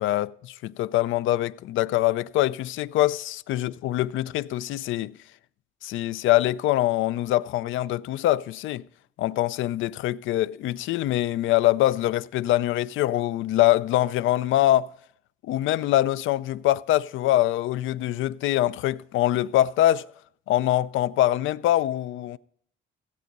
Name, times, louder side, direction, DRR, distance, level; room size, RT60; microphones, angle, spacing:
voice 1, 0.0-5.1 5.8-8.8 9.2-14.9 15.4-20.1 20.5-22.4, left 14 dB, 80° left, 0.4 m, -24 dB
15.5 x 8.1 x 5.3 m
cardioid pair, 90°, 20 cm